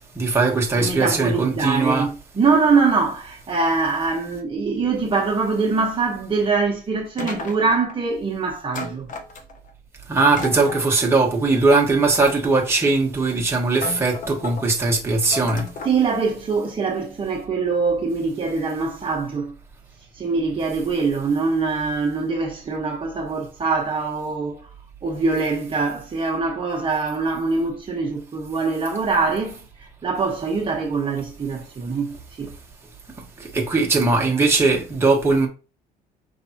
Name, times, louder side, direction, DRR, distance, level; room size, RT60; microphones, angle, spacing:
voice 1, 0.2-2.1 10.1-15.7 33.5-35.5, right 3 dB, 15° right, 1.3 m, -19 dB
voice 2, 0.7-9.1 15.8-19.5 20.1-24.7 25.0-32.5, right 4 dB, 30° right, 1.1 m, -23 dB
sound 1, 7.2-8.0 8.7-9.7 10.2-10.9 11.7-12.6 13.3-13.4 13.8-14.6 15.3-16.0, left 3 dB, 50° left, 0.9 m, -34 dB
5.4 x 3.3 x 2.8 m
cardioid pair, 110°, 17 cm